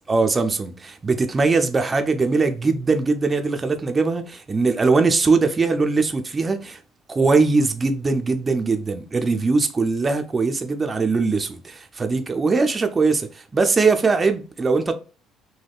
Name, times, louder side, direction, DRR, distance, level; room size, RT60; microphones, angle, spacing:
voice 1, 0.1-6.8 7.1-15.0, right 4 dB, 25° right, 0.4 m, -21 dB
3.4 x 2.2 x 2.3 m
cardioid pair, 110°, 0 cm